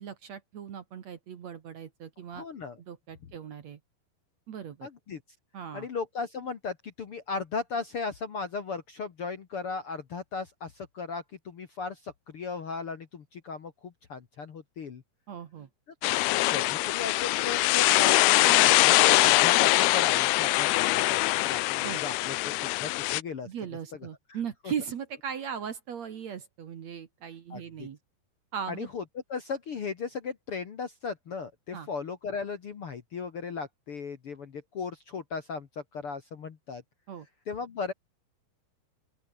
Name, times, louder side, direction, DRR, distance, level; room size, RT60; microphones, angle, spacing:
voice 1, 0.0-2.5 2.9-3.8 4.5-4.9 5.5-5.9 15.3-15.7 18.5-18.7 21.8-22.0 23.5-28.0 28.5-28.9 31.7-31.9 37.1-37.3, right 8 dB, 55° right, 2.4 m, -38 dB
voice 2, 2.3-2.8 4.8-5.2 5.7-15.0 16.5-18.6 18.8-23.5 24.3-24.4 24.6-24.7 27.5-27.9 28.7-29.0 29.3-36.8 37.5-37.9, left 5 dB, 50° left, 1.9 m, -37 dB
sound 1, 16.0-23.2, left 20 dB, 85° left, 2.6 m, -23 dB
open air
omnidirectional pair, 4.4 m